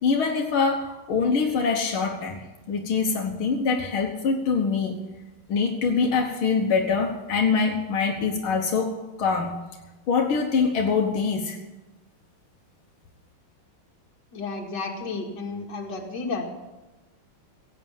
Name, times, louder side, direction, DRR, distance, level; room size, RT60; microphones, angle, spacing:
voice 1, 0.0-2.4 2.7-5.0 5.5-9.6 10.1-11.6, left 5 dB, 80° left, 2 dB, 2.0 m, -24 dB
voice 2, 14.3-16.5, left 3 dB, 55° left, 1 dB, 2.6 m, -32 dB
16.5 x 8.8 x 7.1 m, 1.1 s
omnidirectional pair, 2.3 m